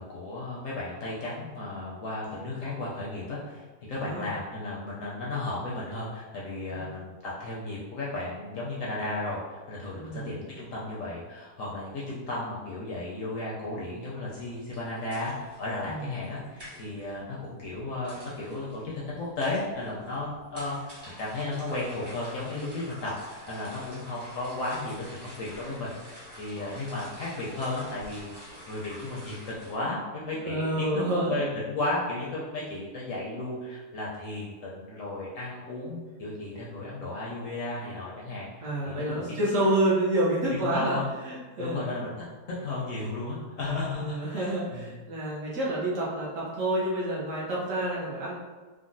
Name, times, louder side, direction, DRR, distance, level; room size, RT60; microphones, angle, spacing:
voice 1, 0.0-28.3 28.7-30.9 31.3-39.4 40.5-41.1 41.6-42.1 42.6-44.9, left 2 dB, 70° left, -5 dB, 0.8 m, -34 dB
voice 2, 4.0-4.3 6.7-6.9 9.9-10.4 15.8-16.1 30.4-31.4 38.6-41.0 41.2-41.8 43.9-48.3, right 1 dB, 65° right, -6 dB, 0.9 m, -28 dB
sound 1, 14.3-29.7, equal, 20° right, 0.7 m, -48 dB
3.7 x 2.0 x 2.5 m, 1.3 s
omnidirectional pair, 1.7 m